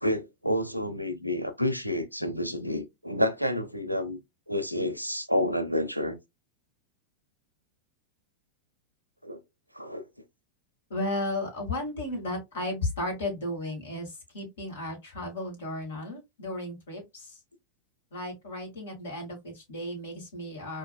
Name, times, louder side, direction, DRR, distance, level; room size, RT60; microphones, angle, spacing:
voice 1, 0.0-4.2 4.5-6.2 9.2-9.4 9.7-10.1, left 1 dB, 90° right, 0.5 m, -29 dB
voice 2, 10.9-17.4 18.1-20.8, left 1 dB, 60° left, 1.9 m, -34 dB
4.4 x 2.6 x 2.2 m
figure-of-eight pair, 90°, 0 cm